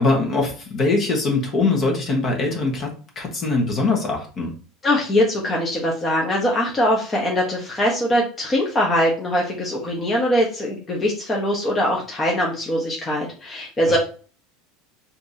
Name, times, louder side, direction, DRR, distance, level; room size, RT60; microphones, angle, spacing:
voice 1, 0.0-4.5 13.9-14.0, left 3 dB, 35° left, 1 dB, 1.3 m, -22 dB
voice 2, 4.8-14.0, equal, 20° left, -2 dB, 1.0 m, -22 dB
4.4 x 2.8 x 2.7 m, 0.39 s
supercardioid pair, 120°, 0 cm